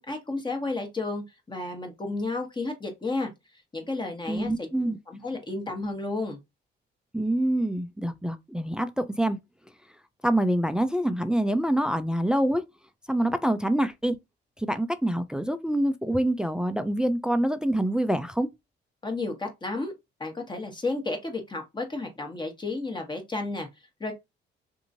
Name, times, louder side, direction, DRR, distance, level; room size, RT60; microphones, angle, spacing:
voice 1, 0.0-3.3 3.7-4.7 5.1-6.4 19.0-19.9 20.2-23.7 24.0-24.1, left 3 dB, 20° left, 1.0 m, -32 dB
voice 2, 4.3-5.0 7.1-9.4 10.2-12.7 13.1-14.2 14.6-18.5, right 1 dB, 5° right, 0.3 m, -26 dB
2.8 x 2.6 x 2.6 m
cardioid pair, 90°, 20 cm